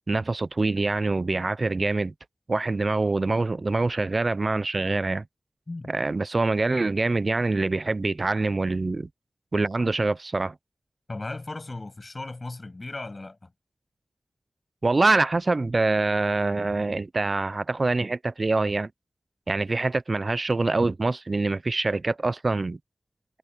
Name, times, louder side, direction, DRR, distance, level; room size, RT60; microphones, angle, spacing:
voice 1, 0.1-2.1 2.5-5.2 5.9-9.1 9.5-10.5 14.8-18.9 19.5-22.8, right 3 dB, 40° right, 0.4 m, -25 dB
voice 2, 11.1-13.5, left 2 dB, 35° left, 7.5 m, -36 dB
wide cardioid pair, 110°, 0 cm